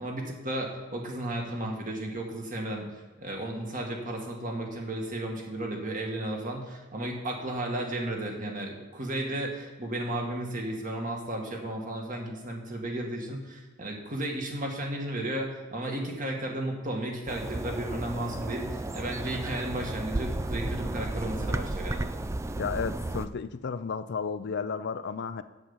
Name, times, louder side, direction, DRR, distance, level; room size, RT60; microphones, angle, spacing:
voice 1, 0.0-2.9 3.2-22.1, right 1 dB, 40° right, 1 dB, 2.0 m, -34 dB
sound 1, 17.3-23.3, right 2 dB, 15° right, 0.3 m, -33 dB
voice 2, 22.6-25.4, left 5 dB, 55° left, 12 dB, 0.4 m, -33 dB
8.4 x 7.7 x 7.2 m, 1.3 s
head